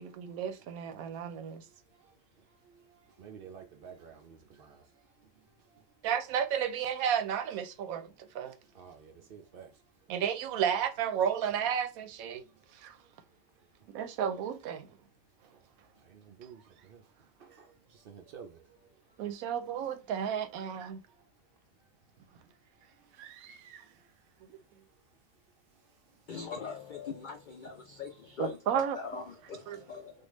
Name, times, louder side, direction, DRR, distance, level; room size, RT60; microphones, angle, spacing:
voice 1, 0.0-1.6 6.0-8.6 10.1-12.4 12.7-13.0 13.9-14.9 19.2-21.0 23.2-23.9 28.4-29.0 29.7-29.8, right 8 dB, 90° right, 1.0 m, -33 dB
voice 2, 3.2-4.8 8.8-9.7 16.1-16.6 16.9-17.0 17.4-17.7 18.1-18.6, right 7 dB, 65° right, 0.5 m, -50 dB
voice 3, 26.3-30.3, left 5 dB, 85° left, 0.4 m, -41 dB
3.4 x 2.3 x 3.0 m
omnidirectional pair, 1.5 m